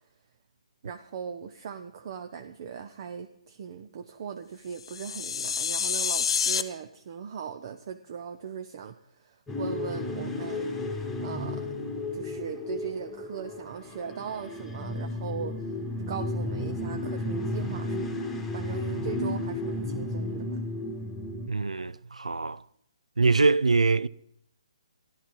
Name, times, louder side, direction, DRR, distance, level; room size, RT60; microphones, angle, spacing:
voice 1, 0.8-10.7 11.2-11.7 12.1-15.8 16.1-18.2 18.5-20.6, right 7 dB, 40° right, 0.8 m, -39 dB
sound 1, 4.8-6.6, left 7 dB, 50° left, 1.0 m, -28 dB
sound 2, 9.5-21.5, left 2 dB, 5° left, 1.7 m, -33 dB
voice 2, 21.5-22.6 23.2-24.1, right 3 dB, 75° right, 0.5 m, -23 dB
15.0 x 11.5 x 5.4 m
figure-of-eight pair, 135°, 4 cm